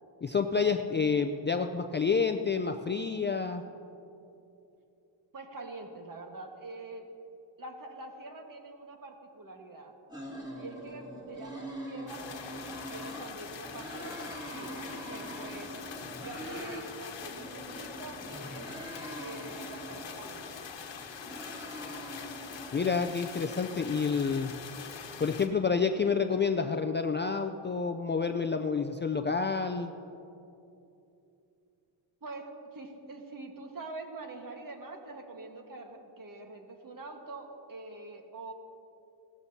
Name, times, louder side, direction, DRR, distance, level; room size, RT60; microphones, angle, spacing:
voice 1, 0.2-3.6 22.7-24.5 25.2-29.9, left 5 dB, 25° left, 6 dB, 0.4 m, -29 dB
voice 2, 5.3-7.1 7.6-9.9 10.5-15.7 16.2-18.7 19.2-20.9 32.2-38.5, right 2 dB, 45° right, 3 dB, 1.5 m, -45 dB
sound 1, 10.1-13.3 13.6-16.8 17.2-20.5 21.0-23.2, equal, 10° right, 3.0 m, -43 dB
sound 2, 12.1-25.5, left 6 dB, 70° left, 1.2 m, -44 dB
17.0 x 13.5 x 2.8 m, 2.8 s
cardioid pair, 100°, 46 cm